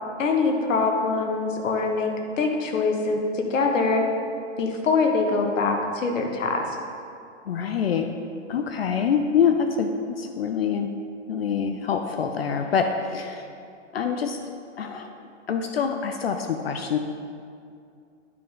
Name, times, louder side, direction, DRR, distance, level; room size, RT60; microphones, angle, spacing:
voice 1, 0.2-4.0 4.6-6.6, left 4 dB, 90° left, 3 dB, 1.3 m, -24 dB
voice 2, 7.5-8.1 8.5-9.9 10.2-10.9 11.3-13.5 13.9-14.4 14.8-15.1 15.5-17.0, left 7 dB, 55° left, 6 dB, 0.4 m, -25 dB
9.4 x 5.3 x 3.8 m, 2.4 s
hypercardioid pair, 180°, 37 cm